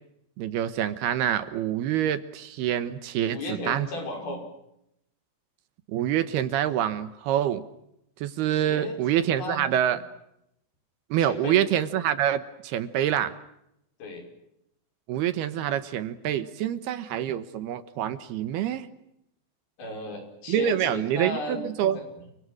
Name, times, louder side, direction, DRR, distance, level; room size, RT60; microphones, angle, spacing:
voice 1, 0.4-3.9 5.9-7.6 8.2-10.0 11.1-13.4 15.1-18.9 20.5-22.0, right 10 dB, 75° right, 12 dB, 3.0 m, -26 dB
voice 2, 3.3-4.4 8.5-9.6 11.2-11.6 14.0-14.2 19.8-21.6 21.9-22.0, left 2 dB, 60° left, 4 dB, 7.5 m, -35 dB
29.5 x 24.5 x 6.3 m, 0.79 s
omnidirectional pair, 4.9 m